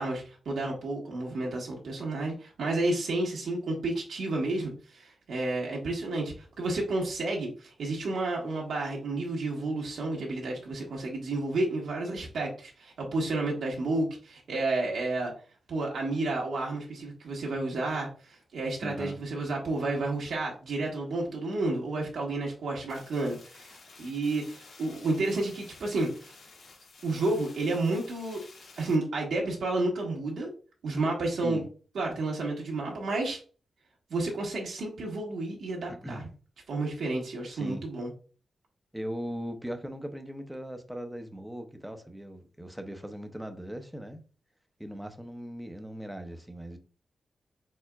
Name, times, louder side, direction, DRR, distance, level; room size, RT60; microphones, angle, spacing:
voice 1, 0.0-15.3 15.7-26.3 27.0-28.4 28.8-30.5 30.8-31.6 31.9-33.4 34.1-36.2 36.7-38.1, right 2 dB, 75° right, 1.3 m, -31 dB
voice 2, 18.8-19.2 31.4-31.6 35.9-36.3 37.5-37.9 38.9-44.2 44.8-46.8, equal, 5° right, 0.6 m, -39 dB
sound 1, 22.9-28.9, left 3 dB, 65° left, 1.6 m, -52 dB
4.9 x 4.4 x 2.3 m
wide cardioid pair, 175°, 0 cm